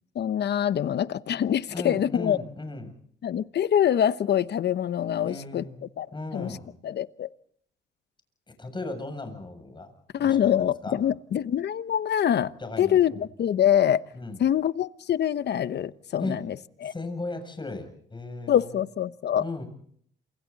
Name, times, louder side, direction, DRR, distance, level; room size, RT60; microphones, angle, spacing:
voice 1, 0.1-2.4 3.2-5.6 6.0-6.1 6.3-6.6 6.8-7.3 10.1-12.5 12.8-14.0 14.4-16.9 18.5-19.4, left 10 dB, 60° left, 14 dB, 1.0 m, -25 dB
voice 2, 1.7-2.9 5.2-5.8 6.1-6.8 8.6-9.9 10.2-11.0 12.6-13.2 14.1-14.4 16.2-16.4 16.8-18.8 19.4-19.7, left 2 dB, 25° left, 6 dB, 7.4 m, -36 dB
28.5 x 26.5 x 4.2 m, 0.62 s
cardioid pair, 90°, 20 cm